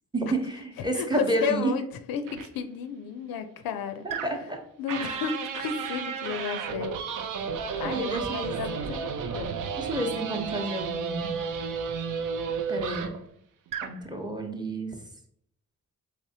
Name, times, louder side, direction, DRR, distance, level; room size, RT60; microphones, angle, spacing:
voice 1, 0.1-1.7 4.0-4.6 5.0-5.2 7.8-8.5 9.8-11.3 12.7-13.1 13.8-14.9, right 2 dB, 10° right, 2 dB, 0.8 m, -30 dB
voice 2, 0.9-4.3 4.8-6.9 7.8-9.5, left 7 dB, 80° left, 8 dB, 0.5 m, -32 dB
sound 1, 2.3-2.5 4.1-4.5 4.9-13.3 13.7-14.0, right 6 dB, 65° right, 0.5 m, -32 dB
3.3 x 3.2 x 2.7 m, 0.66 s
cardioid pair, 60°, 35 cm